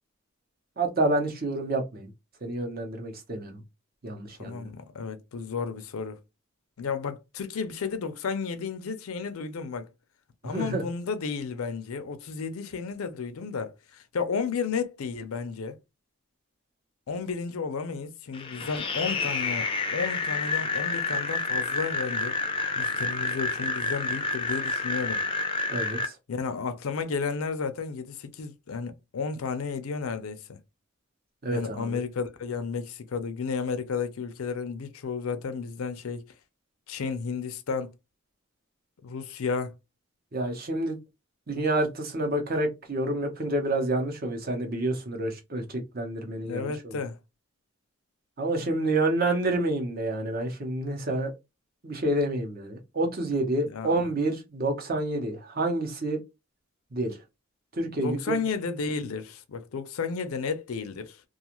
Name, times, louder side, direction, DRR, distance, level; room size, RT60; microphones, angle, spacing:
voice 1, 0.8-2.1 2.4-3.6 4.0-4.7 10.5-10.8 25.7-26.1 31.4-32.0 40.3-41.0 41.5-47.0 48.4-51.3 51.8-56.2 56.9-57.2 57.7-58.2, right 2 dB, 45° right, 0.8 m, -28 dB
voice 2, 4.4-6.2 6.8-9.9 10.4-15.8 17.1-22.4 22.8-25.2 26.3-30.6 31.5-36.3 36.9-37.9 39.0-39.7 46.4-47.2 53.6-54.1 58.0-61.2, left 5 dB, 80° left, 0.5 m, -32 dB
sound 1, 18.3-26.1, left 3 dB, 25° left, 0.4 m, -29 dB
2.4 x 2.3 x 2.9 m
head